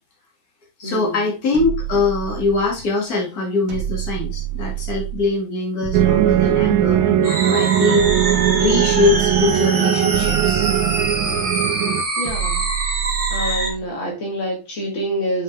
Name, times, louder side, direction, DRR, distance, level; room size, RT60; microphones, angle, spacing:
voice 1, 0.8-10.7, left 3 dB, 50° left, -2 dB, 2.8 m, -22 dB
sound 1, 1.5-2.9 3.7-5.3 5.8-7.2 8.0-9.6 10.1-11.5 12.2-13.9, right 13 dB, 45° right, 1.9 m, -28 dB
sound 2, 5.9-12.0, right 11 dB, 90° right, 1.4 m, -19 dB
sound 3, 7.2-13.7, right 3 dB, 20° right, 1.5 m, -24 dB
voice 2, 12.2-12.6 13.3-15.4, right 1 dB, 75° left, -1 dB, 2.8 m, -26 dB
7.0 x 5.2 x 3.5 m, 0.28 s
omnidirectional pair, 2.1 m